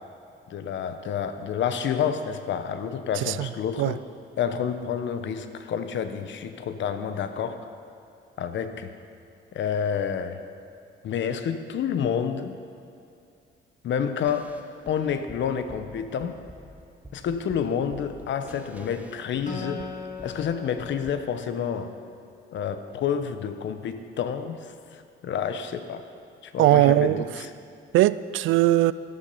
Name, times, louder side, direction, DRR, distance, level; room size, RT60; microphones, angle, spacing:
voice 1, 0.5-4.0 4.4-7.6 8.4-8.9 9.5-10.4 11.0-12.6 13.8-14.5 14.9-16.4 17.1-19.8 20.2-21.9 22.5-26.0 26.4-27.5, left 7 dB, 70° left, 9 dB, 1.0 m, -29 dB
voice 2, 3.2-3.5 3.8-4.0 26.6-27.3 27.9-28.9, right 15 dB, 80° right, 17 dB, 0.4 m, -20 dB
sound 1, 14.2-21.1, equal, 5° right, 1.1 m, -48 dB
Acoustic guitar, 19.5-22.9, left 3 dB, 40° left, 1.9 m, -40 dB
13.5 x 12.0 x 5.6 m, 2.5 s
cardioid pair, 90°, 20 cm